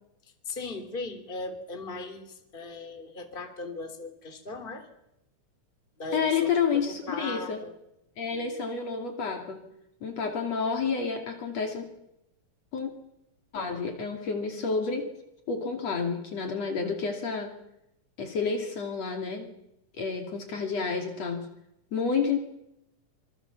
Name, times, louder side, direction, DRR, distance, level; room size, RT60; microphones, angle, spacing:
voice 1, 0.2-4.9 6.0-7.7 8.3-8.6, left 3 dB, 15° left, 7 dB, 3.1 m, -38 dB
voice 2, 6.1-7.6 8.2-9.7 10.0-11.9 12.7-12.9 13.5-15.1 15.5-17.5 18.2-19.5 20.0-21.5 21.9-22.4, left 5 dB, 55° left, 4 dB, 3.6 m, -29 dB
26.5 x 25.5 x 7.2 m, 0.86 s
omnidirectional pair, 3.7 m